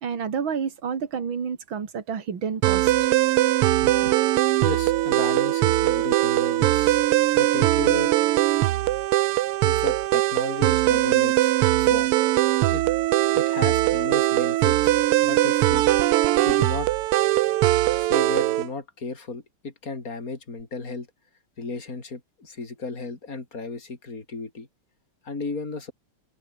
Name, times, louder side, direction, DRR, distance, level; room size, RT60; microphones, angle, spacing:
voice 1, 0.0-2.9 3.8-3.9, right 6 dB, 60° right, 3.1 m, -29 dB
sound 1, 2.6-18.7, right 15 dB, 90° right, 1.7 m, -21 dB
voice 2, 4.6-7.0 7.3-8.1 9.6-12.1 12.7-12.8 13.4-14.9 15.2-15.8 16.3-16.9 17.9-21.1 21.6-24.7 25.2-25.9, left 3 dB, 40° left, 4.4 m, -34 dB
omnidirectional pair, 2.4 m